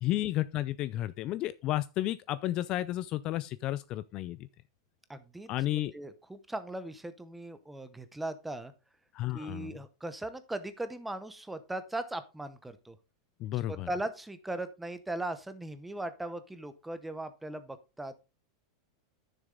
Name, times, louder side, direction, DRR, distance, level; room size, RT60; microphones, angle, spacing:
voice 1, 0.0-4.4 5.5-5.9 9.1-9.7 13.4-13.9, left 14 dB, 30° left, 0.4 m, -32 dB
voice 2, 5.1-8.7 9.3-13.0 13.5-18.2, right 1 dB, 5° right, 0.8 m, -39 dB
10.5 x 6.7 x 3.8 m
supercardioid pair, 160°, 2 cm